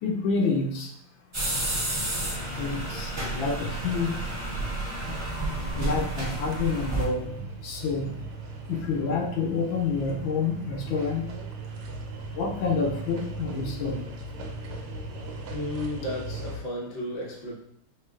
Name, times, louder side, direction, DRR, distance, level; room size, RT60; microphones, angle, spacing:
voice 1, 0.0-0.9 2.6-4.1 5.7-7.3 7.6-8.1 8.7-11.2 12.3-14.0, left 4 dB, 70° left, 2 dB, 1.3 m, -28 dB
sound 1, 1.3-7.0, right 2 dB, 30° right, 0.5 m, -31 dB
sound 2, 1.5-16.6, right 2 dB, 80° right, 1.5 m, -39 dB
voice 2, 15.5-17.5, left 1 dB, 50° left, -4 dB, 0.4 m, -33 dB
6.3 x 3.1 x 2.4 m, 0.68 s
omnidirectional pair, 2.4 m